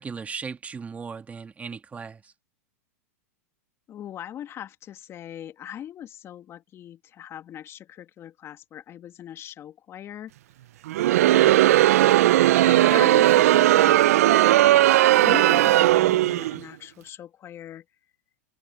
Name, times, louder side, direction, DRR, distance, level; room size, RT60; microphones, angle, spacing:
voice 1, 0.0-2.3, right 5 dB, 15° right, 2.0 m, -37 dB
voice 2, 3.9-10.3 11.2-11.7 12.6-17.8, left 10 dB, 30° left, 1.8 m, -39 dB
Crowd, 10.9-16.6, right 14 dB, 70° right, 0.4 m, -17 dB
hypercardioid pair, 115°, 8 cm